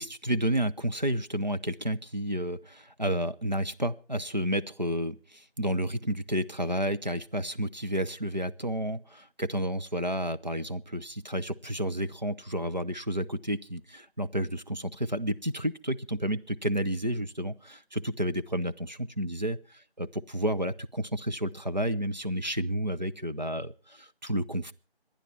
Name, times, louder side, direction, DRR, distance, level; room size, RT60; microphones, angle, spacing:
voice 1, 0.0-19.6 20.0-24.7, right 1 dB, 45° right, 9 dB, 0.7 m, -31 dB
26.5 x 10.5 x 4.4 m, 0.36 s
figure-of-eight pair, 170°, 32 cm